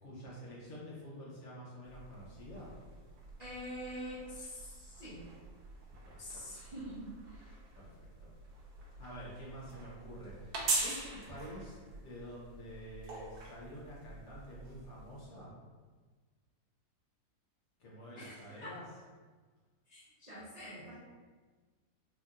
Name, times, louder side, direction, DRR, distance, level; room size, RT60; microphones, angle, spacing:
voice 1, 0.0-2.7 6.0-6.5 7.8-8.3 9.0-15.5 17.8-18.8, equal, 55° left, -6 dB, 1.0 m, -49 dB
sound 1, 1.8-15.3, right 3 dB, 75° right, 1.3 m, -43 dB
voice 2, 3.4-5.2 6.2-7.6 18.2-18.7 19.9-21.0, equal, 45° right, -9 dB, 0.5 m, -46 dB
4.4 x 2.7 x 2.4 m, 1.4 s
omnidirectional pair, 1.7 m